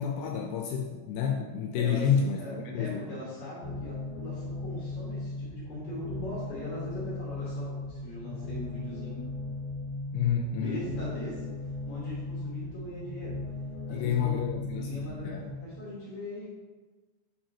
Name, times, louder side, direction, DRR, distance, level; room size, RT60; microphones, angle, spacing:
voice 1, 0.0-3.0 10.1-10.8 13.9-15.4, left 7 dB, 80° left, 3 dB, 2.5 m, -29 dB
voice 2, 1.7-9.3 10.6-13.4 13.9-14.4 14.8-16.5, left 1 dB, 65° left, -6 dB, 1.9 m, -40 dB
sound 1, 3.6-15.6, left 2 dB, 40° left, 2.8 m, -37 dB
8.0 x 5.9 x 2.8 m, 1.3 s
omnidirectional pair, 4.9 m